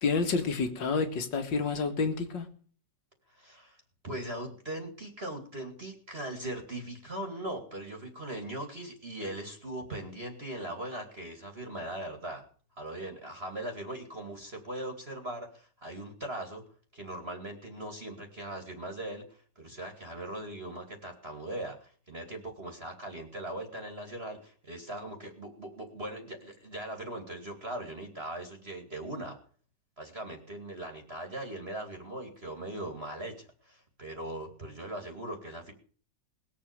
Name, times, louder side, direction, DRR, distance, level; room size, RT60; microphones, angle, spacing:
voice 1, 0.0-2.5, left 4 dB, 80° left, 2.4 m, -29 dB
voice 2, 3.3-12.4 12.8-16.6 16.9-29.4 30.0-35.7, right 1 dB, 35° right, 2.5 m, -40 dB
20.0 x 7.5 x 6.6 m
omnidirectional pair, 2.0 m